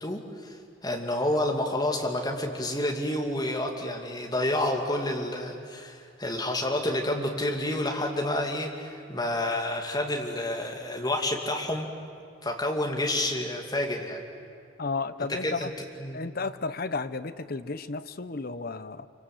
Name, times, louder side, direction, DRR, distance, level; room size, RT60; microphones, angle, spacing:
voice 1, 0.0-11.9 12.4-14.2 15.3-15.7 16.0-16.2, left 1 dB, 20° left, 1 dB, 2.4 m, -29 dB
voice 2, 14.8-15.7 16.1-19.1, left 3 dB, 45° left, 13 dB, 0.7 m, -33 dB
26.5 x 25.0 x 7.9 m, 2.3 s
head